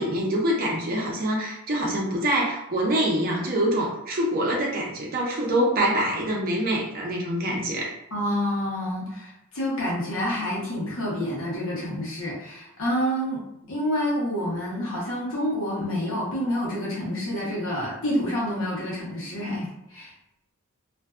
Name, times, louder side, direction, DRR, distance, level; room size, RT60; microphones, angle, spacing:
voice 1, 0.0-8.0, right 1 dB, 40° right, -1 dB, 0.6 m, -25 dB
voice 2, 8.1-13.4 13.7-20.1, equal, 65° left, -6 dB, 0.9 m, -28 dB
2.5 x 2.2 x 2.3 m, 0.82 s
head